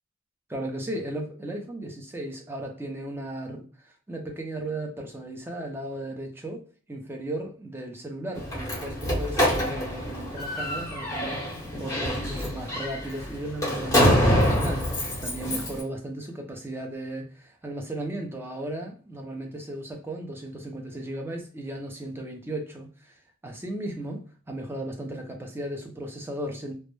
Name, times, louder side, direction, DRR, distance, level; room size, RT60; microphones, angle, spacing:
voice 1, 0.5-26.7, right 1 dB, 10° right, 2 dB, 0.4 m, -36 dB
Slam, 8.3-15.8, equal, 15° left, 0.8 m, -26 dB
2.1 x 2.0 x 3.0 m, 0.38 s
head